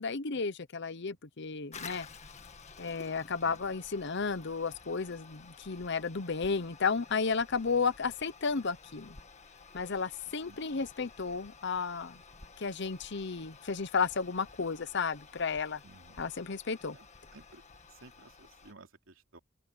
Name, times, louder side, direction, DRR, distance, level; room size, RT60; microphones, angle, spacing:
voice 1, 0.0-2.1 2.8-9.2 9.7-12.2 12.6-15.8 16.2-17.0, left 5 dB, 60° left, 0.9 m, -33 dB
Toilet flush, 1.7-18.7, left 5 dB, 35° left, 1.7 m, -52 dB
voice 2, 10.3-10.6 15.8-16.2 16.9-17.1 17.3-17.6 17.9-19.4, right 2 dB, 80° right, 3.1 m, -56 dB
open air
head